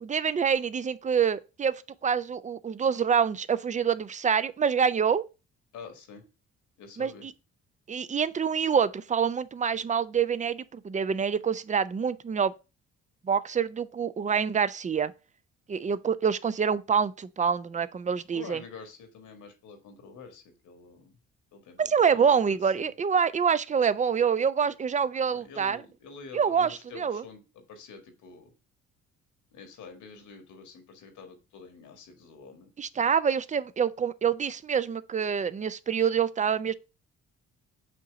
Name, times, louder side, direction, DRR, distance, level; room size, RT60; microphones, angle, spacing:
voice 1, 0.0-1.7 2.0-5.2 7.0-7.3 7.9-12.5 13.2-15.1 15.7-18.6 21.8-25.8 26.3-27.2 32.8-36.7, right 7 dB, 25° right, 0.4 m, -26 dB
voice 2, 5.7-6.2 6.8-7.3 18.3-21.2 21.5-22.9 25.3-28.5 29.5-32.7, left 5 dB, 75° left, 1.7 m, -47 dB
7.5 x 2.9 x 4.8 m
cardioid pair, 90°, 30 cm